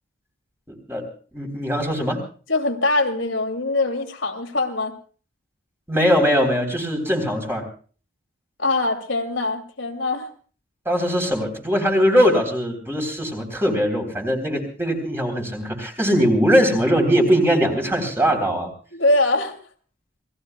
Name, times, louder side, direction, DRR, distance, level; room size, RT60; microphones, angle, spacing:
voice 1, 0.7-1.0 1.3-2.2 5.9-7.7 10.9-18.7, equal, 10° right, 3.6 m, -21 dB
voice 2, 2.5-5.0 8.6-10.3 18.9-19.5, left 2 dB, 75° left, 2.5 m, -22 dB
27.5 x 19.0 x 2.3 m
head